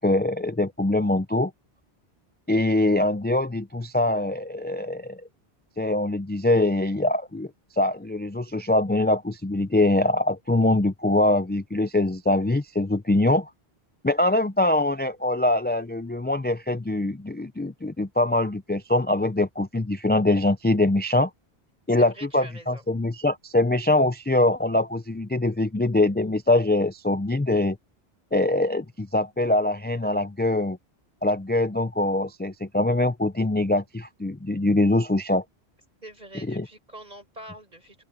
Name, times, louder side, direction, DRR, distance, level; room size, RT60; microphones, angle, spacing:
voice 1, 0.0-1.5 2.5-5.2 5.8-7.5 7.8-13.5 14.0-21.3 21.9-27.8 28.3-30.8 31.2-35.4 36.5-36.6, left 2 dB, 15° left, 0.3 m, -23 dB
voice 2, 21.9-22.8 36.0-38.0, right 1 dB, 40° right, 7.7 m, -44 dB
open air
omnidirectional pair, 1.1 m